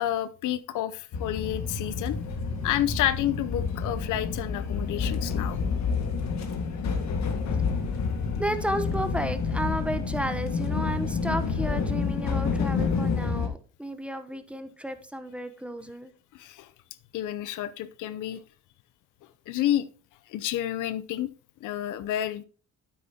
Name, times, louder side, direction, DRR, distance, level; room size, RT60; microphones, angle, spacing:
voice 1, 0.0-2.2 2.6-5.6 16.3-16.7 17.1-18.4 19.5-19.9 20.3-21.3 21.6-22.4, left 12 dB, 85° left, 14 dB, 0.6 m, -29 dB
sound 1, 1.1-13.5, left 5 dB, 65° left, 1.8 m, -29 dB
voice 2, 8.4-16.1, right 1 dB, 5° right, 9 dB, 0.9 m, -32 dB
9.5 x 8.5 x 2.8 m, 0.38 s
cardioid pair, 90°, 30 cm